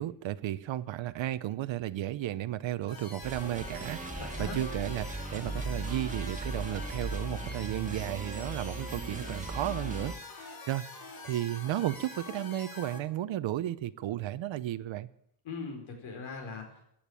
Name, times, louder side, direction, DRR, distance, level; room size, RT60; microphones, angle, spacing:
voice 1, 0.0-15.1, right 13 dB, 70° right, 15 dB, 0.7 m, -34 dB
sound 1, 2.9-13.0, left 3 dB, 45° left, 3.0 m, -45 dB
sound 2, 3.2-10.2, right 2 dB, 15° right, 1.6 m, -38 dB
voice 2, 4.1-4.6 15.4-16.8, left 4 dB, 75° left, 3 dB, 4.6 m, -40 dB
15.5 x 8.9 x 8.8 m, 0.74 s
cardioid pair, 135°, 47 cm